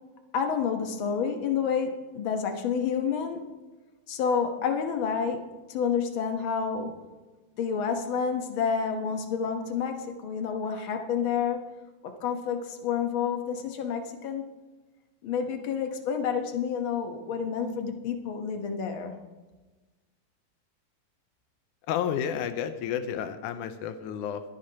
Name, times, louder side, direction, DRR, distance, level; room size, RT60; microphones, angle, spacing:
voice 1, 0.3-3.4 4.1-7.0 7.6-11.6 12.2-14.5 15.2-19.2, left 6 dB, 60° left, 5 dB, 1.4 m, -29 dB
voice 2, 21.9-24.4, left 9 dB, 85° left, 9 dB, 2.3 m, -31 dB
21.5 x 10.0 x 2.9 m, 1.2 s
omnidirectional pair, 3.5 m